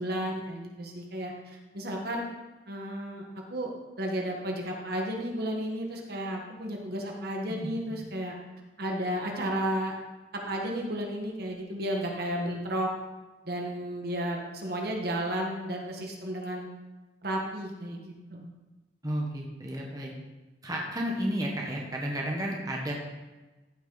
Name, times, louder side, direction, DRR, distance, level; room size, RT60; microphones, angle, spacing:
voice 1, 0.0-2.3 2.7-3.2 3.5-3.7 4.0-8.4 8.8-9.9 10.3-12.9 13.4-16.7 17.2-18.5, right 1 dB, 60° right, 0 dB, 1.6 m, -33 dB
voice 2, 19.0-20.1 20.6-22.9, equal, 20° right, -2 dB, 1.3 m, -32 dB
14.0 x 6.2 x 4.0 m, 1.2 s
head